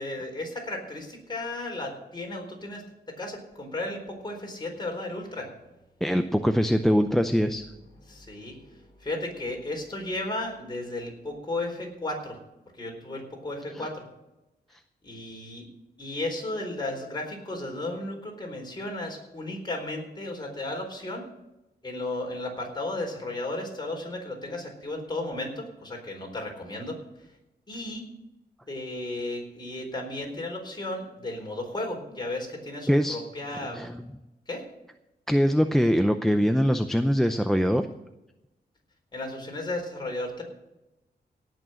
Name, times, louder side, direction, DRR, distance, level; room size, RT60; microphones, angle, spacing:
voice 1, 0.0-5.5 8.0-12.4 12.8-14.1 15.0-15.7 16.0-21.3 21.8-27.0 27.7-28.0 28.7-33.9 34.5-34.7 39.1-40.4, left 2 dB, 25° left, 1 dB, 4.1 m, -34 dB
voice 2, 6.0-7.6 32.9-33.2 33.7-34.0 35.3-37.9, equal, ahead, 8 dB, 0.6 m, -23 dB
17.5 x 6.3 x 7.7 m, 0.94 s
wide cardioid pair, 120°, 17 cm